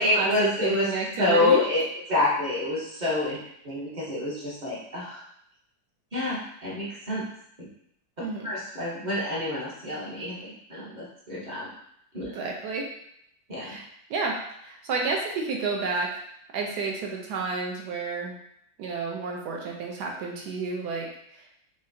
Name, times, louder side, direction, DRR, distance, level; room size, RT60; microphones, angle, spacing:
voice 1, 0.0-0.9 1.2-1.8 2.1-3.4 3.6-5.2 6.1-7.3 7.6-7.7 8.4-11.7 12.1-12.3 13.5-13.8, left 2 dB, 40° right, -6 dB, 0.6 m, -27 dB
voice 2, 0.6-1.6 8.2-8.5 12.2-12.9 13.6-13.8 14.1-16.1 16.5-18.4 18.8-21.1, right 4 dB, 70° right, -1 dB, 1.1 m, -30 dB
5.5 x 2.1 x 2.6 m, 0.73 s
omnidirectional pair, 2.0 m